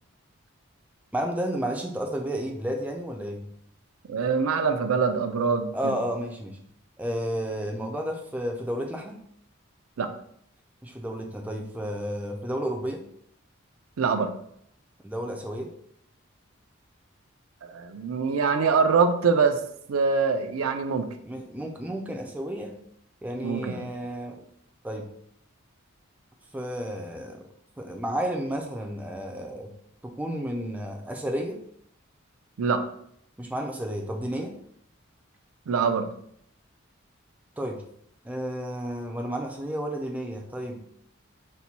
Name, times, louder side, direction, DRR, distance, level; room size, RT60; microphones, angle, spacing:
voice 1, 1.1-3.5 5.7-6.6 7.0-9.2 10.8-13.0 15.0-15.7 21.3-22.8 23.2-24.4 24.8-25.1 26.5-27.5 27.8-29.7 30.0-31.6 33.4-34.5 37.6-37.8 38.2-40.9, equal, 5° right, 2 dB, 0.3 m, -32 dB
voice 2, 4.1-6.0 10.0-10.1 14.0-14.3 17.6-19.6 19.9-21.1 23.4-23.9 32.6-32.8 35.7-36.1, right 5 dB, 90° right, 7 dB, 0.5 m, -24 dB
4.3 x 2.2 x 4.1 m, 0.68 s
head